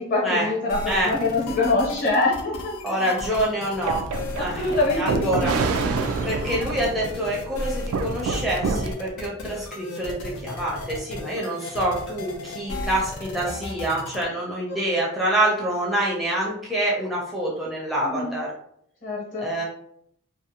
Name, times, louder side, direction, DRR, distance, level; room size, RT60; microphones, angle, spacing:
voice 1, 0.0-2.7 4.3-5.5 14.7-14.8 18.0-18.4 19.0-19.5, left 2 dB, 40° left, -5 dB, 0.9 m, -24 dB
sound 1, 0.7-14.2, left 3 dB, 85° left, 0.5 m, -35 dB
voice 2, 2.8-4.1 4.4-5.5 6.2-18.5 19.4-19.6, right 1 dB, ahead, -5 dB, 0.5 m, -26 dB
sound 2, 3.8-8.9, right 4 dB, 85° right, 0.3 m, -27 dB
2.5 x 2.0 x 2.7 m, 0.69 s
head